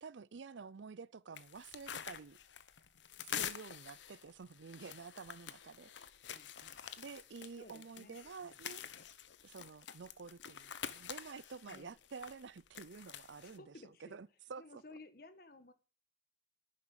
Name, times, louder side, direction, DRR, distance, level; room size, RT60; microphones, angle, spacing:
voice 1, 0.0-2.4 3.2-5.9 7.0-8.8 9.4-13.7 14.0-14.8, right 5 dB, 85° right, 0.5 m, -50 dB
sound 1, 1.4-13.6, left 9 dB, 80° left, 0.9 m, -47 dB
voice 2, 6.3-6.8 7.6-8.2 8.4-8.5 11.7-11.9 13.4-14.2 14.6-15.7, left 2 dB, 50° left, 1.4 m, -56 dB
10.5 x 7.3 x 9.5 m
head